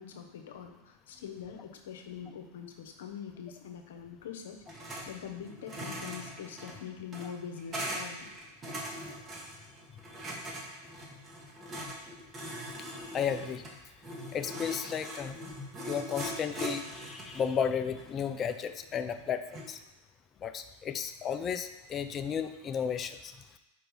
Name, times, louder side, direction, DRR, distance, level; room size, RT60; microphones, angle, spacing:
voice 1, 0.0-8.2 14.2-14.3, left 8 dB, 70° left, 5 dB, 0.9 m, -44 dB
sound 1, 4.7-5.1 5.4-19.7, equal, 25° right, 1.6 m, -41 dB
voice 2, 12.8-13.6 14.3-15.4 15.9-19.8 20.4-23.3, left 7 dB, 30° left, 9 dB, 0.5 m, -33 dB
5.1 x 4.5 x 5.4 m, 0.97 s
hypercardioid pair, 95°, 0 cm